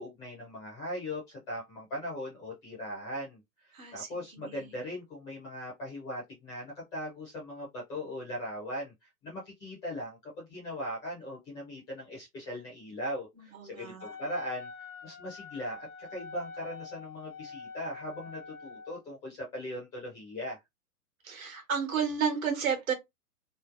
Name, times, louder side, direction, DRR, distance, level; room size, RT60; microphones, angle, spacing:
voice 1, 0.0-20.6, equal, 10° left, 0.5 m, -39 dB
voice 2, 3.7-4.8 13.4-14.1 21.2-22.9, right 6 dB, 60° right, 1.3 m, -32 dB
Wind instrument woodwind instrument, 14.0-19.0, left 5 dB, 55° left, 0.6 m, -45 dB
3.0 x 2.0 x 2.5 m
figure-of-eight pair, 115°, 46 cm